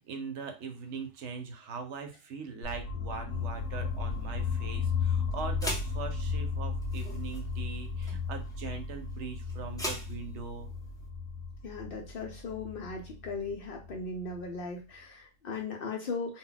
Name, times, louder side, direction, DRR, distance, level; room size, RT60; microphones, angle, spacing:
voice 1, 0.0-10.7, right 5 dB, 75° right, 5 dB, 0.9 m, -41 dB
sound 1, 2.6-14.6, left 5 dB, 85° left, 0.9 m, -35 dB
sound 2, 3.3-11.1, left 1 dB, 5° left, 0.3 m, -44 dB
voice 2, 11.6-16.4, left 4 dB, 60° left, 0 dB, 0.6 m, -38 dB
2.2 x 2.1 x 3.8 m, 0.30 s
omnidirectional pair, 1.3 m